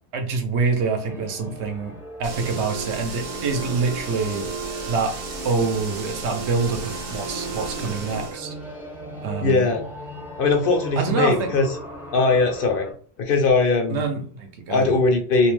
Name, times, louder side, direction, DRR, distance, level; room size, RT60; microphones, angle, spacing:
voice 1, 0.1-1.9 2.2-4.5 4.8-5.1 5.4-8.5 9.2-9.7 11.0-11.5 13.9-15.0, right 4 dB, 80° right, 5 dB, 0.9 m, -26 dB
sound 1, 0.7-12.9, equal, 5° right, 0.4 m, -39 dB
sound 2, 2.2-8.4, right 4 dB, 50° right, 0.6 m, -33 dB
voice 2, 9.4-9.8 10.4-11.7 12.1-12.9 13.2-14.0 14.7-15.5, left 3 dB, 60° left, 2 dB, 0.7 m, -20 dB
2.5 x 2.0 x 3.0 m, 0.43 s
omnidirectional pair, 1.1 m